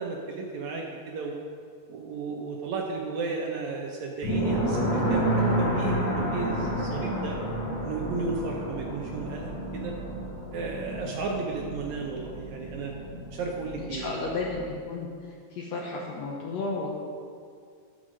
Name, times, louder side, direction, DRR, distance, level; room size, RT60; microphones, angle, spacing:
voice 1, 0.0-1.4 1.9-7.4 7.8-9.9 10.5-12.9 13.3-14.1, right 4 dB, 70° right, 0 dB, 1.9 m, -34 dB
sound 1, 4.2-14.8, right 1 dB, 25° left, 2.4 m, -30 dB
voice 2, 13.8-16.9, left 3 dB, 65° left, -2 dB, 1.7 m, -33 dB
10.5 x 6.1 x 6.2 m, 2.2 s
omnidirectional pair, 4.0 m